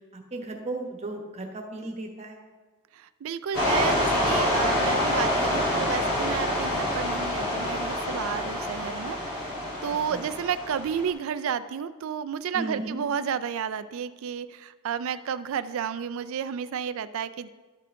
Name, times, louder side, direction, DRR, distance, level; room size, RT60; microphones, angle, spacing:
voice 1, 0.1-2.4 10.1-10.2 12.5-13.0, right 2 dB, 30° right, 2 dB, 1.1 m, -35 dB
voice 2, 2.9-9.5 9.8-17.5, right 7 dB, 65° right, 13 dB, 0.4 m, -32 dB
sound 1, 3.5-11.1, left 1 dB, 65° left, 3.1 m, -27 dB
12.5 x 5.6 x 3.7 m, 1.3 s
head